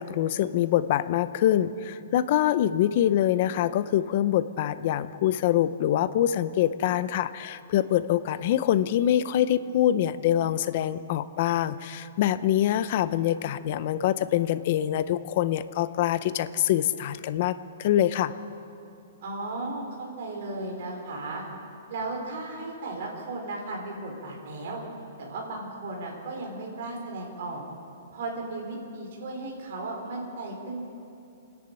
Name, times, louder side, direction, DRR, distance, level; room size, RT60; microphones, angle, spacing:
voice 1, 0.0-17.5 17.8-18.3, left 11 dB, 35° left, 13 dB, 0.7 m, -25 dB
voice 2, 19.2-21.4 21.9-24.8 25.2-27.6 28.1-30.8, right 2 dB, 45° right, -1 dB, 4.6 m, -35 dB
27.5 x 10.5 x 9.0 m, 2.7 s
hypercardioid pair, 175°, 0 cm